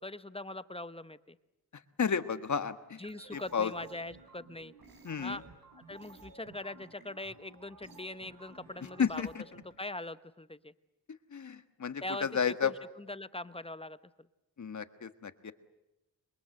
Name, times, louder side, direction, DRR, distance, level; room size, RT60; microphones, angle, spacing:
voice 1, 0.0-1.4 3.0-4.7 5.2-5.4 5.7-10.7 12.0-14.0, left 2 dB, 15° left, 14 dB, 0.8 m, -42 dB
voice 2, 2.0-3.0 3.3-3.7 5.0-5.4 9.0-9.4 11.3-12.7 14.6-15.5, left 6 dB, 55° left, 11 dB, 1.5 m, -32 dB
sound 1, 2.9-9.7, right 4 dB, 75° right, 4.5 m, -55 dB
28.0 x 23.0 x 7.8 m, 0.93 s
wide cardioid pair, 90°, 35 cm